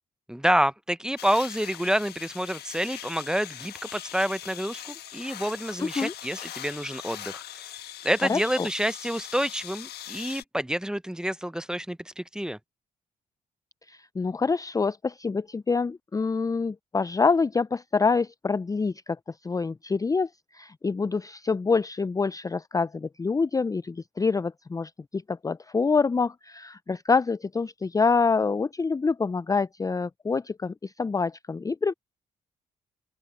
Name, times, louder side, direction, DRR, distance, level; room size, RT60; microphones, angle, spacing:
voice 1, 0.3-7.8 8.0-12.6, equal, 5° right, 1.0 m, -28 dB
sound 1, 1.2-10.4, left 12 dB, 75° left, 1.4 m, -41 dB
voice 2, 5.8-6.1 8.3-8.7 13.9-19.2 19.4-31.9, left 4 dB, 20° left, 0.5 m, -26 dB
open air
hypercardioid pair, 50°, 17 cm